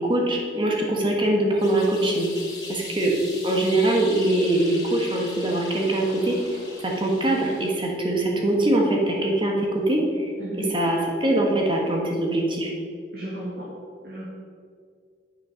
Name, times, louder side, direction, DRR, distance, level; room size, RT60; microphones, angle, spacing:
voice 1, 0.0-2.3 2.7-3.1 3.4-6.4 6.8-10.3 10.6-12.7, right 1 dB, 25° right, -1 dB, 1.5 m, -23 dB
sound 1, 1.6-7.9, left 2 dB, 20° left, 2.3 m, -40 dB
voice 2, 13.1-13.7 14.0-14.2, right 1 dB, 55° right, -6 dB, 2.0 m, -34 dB
9.9 x 6.9 x 5.7 m, 2.2 s
head